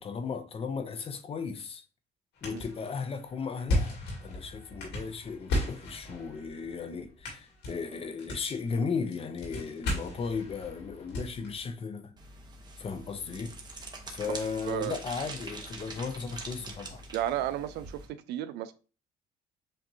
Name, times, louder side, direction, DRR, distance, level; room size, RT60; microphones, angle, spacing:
voice 1, 0.0-1.8 2.4-12.1 12.8-13.5 14.1-17.0, left 5 dB, 35° left, 0.6 m, -36 dB
sound 1, 2.3-11.7, left 1 dB, 85° left, 2.1 m, -36 dB
sound 2, 12.2-18.1, right 3 dB, 25° right, 1.0 m, -44 dB
voice 2, 14.6-15.0 17.1-18.7, right 12 dB, 80° right, 0.5 m, -33 dB
7.6 x 2.5 x 2.6 m
cardioid pair, 110°, 17 cm